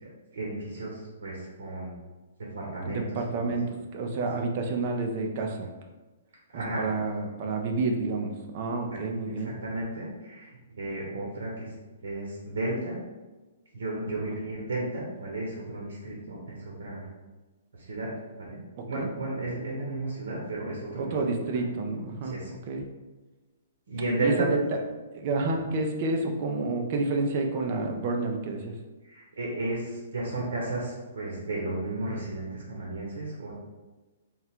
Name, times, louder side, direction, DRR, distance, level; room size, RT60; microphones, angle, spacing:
voice 1, 0.3-1.9 2.5-3.5 6.5-6.8 8.9-9.0 9.4-11.7 12.0-13.0 13.7-17.1 17.7-18.1 18.4-18.6 18.9-21.1 22.2-22.5 23.9-24.5 29.0-33.5, right 2 dB, 80° right, -3 dB, 1.0 m, -33 dB
voice 2, 2.9-3.7 3.9-5.7 6.5-9.5 18.8-19.1 21.0-22.4 22.7-22.9 24.2-24.8 25.1-28.7, right 3 dB, 30° right, 2 dB, 0.4 m, -29 dB
3.6 x 2.2 x 4.3 m, 1.2 s
hypercardioid pair, 175°, 0 cm